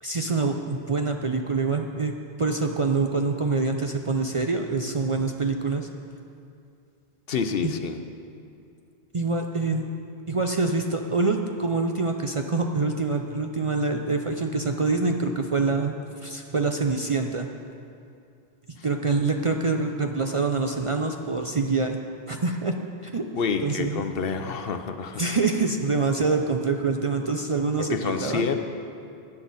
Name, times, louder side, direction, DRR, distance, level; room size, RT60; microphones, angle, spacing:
voice 1, 0.0-2.1 2.4-5.9 7.6-7.7 9.1-9.9 10.3-17.5 18.8-22.0 22.3-22.7 23.0-23.2 23.6-24.0 25.2-28.0 28.2-28.4, right 3 dB, 40° right, 3 dB, 0.5 m, -25 dB
voice 2, 7.3-8.0 18.8-18.9 23.3-25.2 27.8-28.6, left 5 dB, 65° left, 7 dB, 0.9 m, -28 dB
16.5 x 9.8 x 4.0 m, 2.5 s
omnidirectional pair, 1.1 m